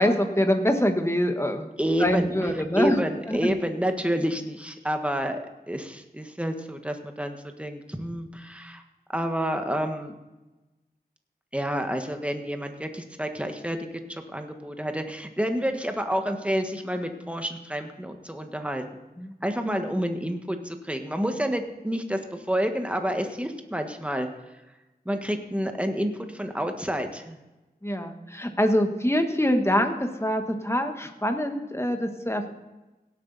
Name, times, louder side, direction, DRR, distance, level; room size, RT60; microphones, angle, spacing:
voice 1, 0.0-1.7 2.0-3.0 3.3-3.5 19.2-19.3 27.8-32.5, equal, 15° left, 6 dB, 1.4 m, -24 dB
voice 2, 1.8-2.3 2.8-8.8 9.1-10.1 11.5-13.8 14.1-19.0 19.4-24.3 25.0-27.4, equal, 5° right, 5 dB, 1.4 m, -29 dB
17.5 x 8.3 x 4.1 m, 1.1 s
wide cardioid pair, 55°, 17 cm